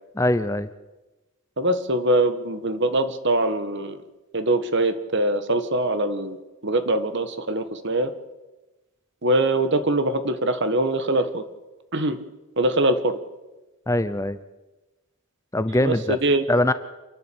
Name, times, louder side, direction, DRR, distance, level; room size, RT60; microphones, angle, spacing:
voice 1, 0.2-0.7 13.9-14.4 15.5-16.2 16.5-16.7, left 1 dB, 15° left, 12 dB, 0.6 m, -22 dB
voice 2, 1.6-4.0 4.3-6.4 6.6-8.1 9.2-11.4 11.9-12.2 12.6-13.2 15.8-16.5, right 1 dB, 55° right, 10 dB, 1.6 m, -23 dB
28.0 x 11.0 x 8.7 m, 1.1 s
head